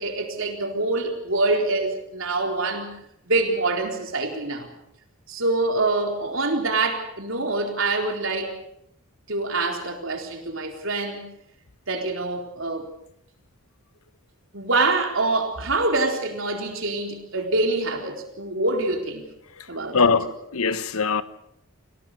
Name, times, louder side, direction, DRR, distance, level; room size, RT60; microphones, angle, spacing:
voice 1, 0.0-2.9 3.3-4.7 5.3-8.6 9.3-11.2 11.9-12.9 14.5-19.3 19.7-20.3, right 2 dB, 60° right, 4.1 m, -25 dB
voice 2, 19.9-21.2, left 5 dB, 75° left, 1.2 m, -22 dB
26.0 x 17.5 x 6.8 m
head